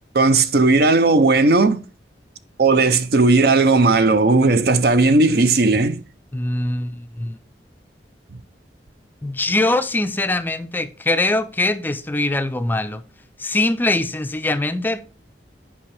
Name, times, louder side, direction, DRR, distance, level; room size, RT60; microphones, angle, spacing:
voice 1, 0.1-1.8 2.6-6.0, right 3 dB, 60° right, 0.6 m, -16 dB
voice 2, 6.3-7.4 9.2-13.0 13.4-15.1, left 2 dB, 10° left, 0.4 m, -22 dB
8.4 x 5.4 x 3.3 m
head